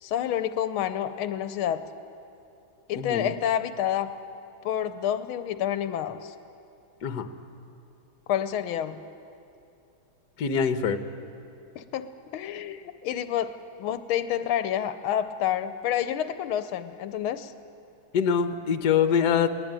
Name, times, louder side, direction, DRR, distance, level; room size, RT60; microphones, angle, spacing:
voice 1, 0.0-1.8 2.9-4.1 4.6-6.3 8.3-9.0 11.7-17.5, left 10 dB, 80° left, 11 dB, 1.5 m, -29 dB
voice 2, 2.9-3.3 7.0-7.3 10.4-11.0 18.1-19.5, left 7 dB, 60° left, 9 dB, 1.4 m, -24 dB
21.0 x 18.5 x 8.9 m, 2.7 s
omnidirectional pair, 2.3 m